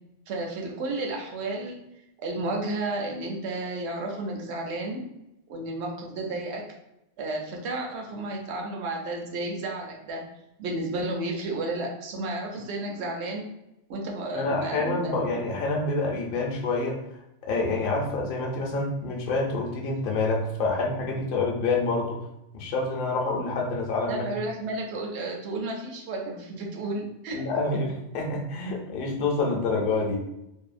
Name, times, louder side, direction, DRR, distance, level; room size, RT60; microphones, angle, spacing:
voice 1, 0.3-1.8 2.2-5.0 5.5-6.6 7.2-10.2 10.6-13.5 13.9-15.3 24.1-27.4, right 2 dB, 70° right, 0 dB, 0.9 m, -32 dB
voice 2, 14.3-17.0 17.5-22.2 22.5-24.4 27.3-30.2, left 3 dB, 55° left, 0 dB, 0.7 m, -27 dB
2.7 x 2.3 x 2.4 m, 0.87 s
omnidirectional pair, 1.2 m